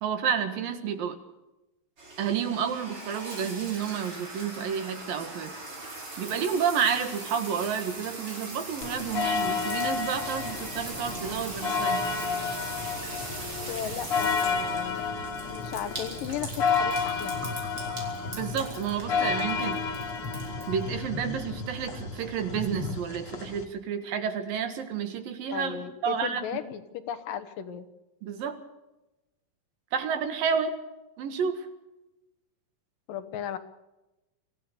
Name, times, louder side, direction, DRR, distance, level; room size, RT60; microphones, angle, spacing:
voice 1, 0.0-1.2 2.2-5.5 6.2-12.0 18.3-19.8 20.7-26.5 28.2-28.6 29.9-30.8 31.2-31.7, right 7 dB, 80° right, 8 dB, 3.5 m, -30 dB
sound 1, 2.0-20.8, right 2 dB, 35° right, 5.2 m, -40 dB
sound 2, 8.8-23.6, left 5 dB, 45° left, 2.7 m, -31 dB
voice 2, 13.7-15.0 15.5-17.3 25.5-26.8 27.1-27.9 33.1-33.6, left 9 dB, 75° left, 10 dB, 2.8 m, -35 dB
25.0 x 15.5 x 6.8 m, 0.99 s
omnidirectional pair, 4.1 m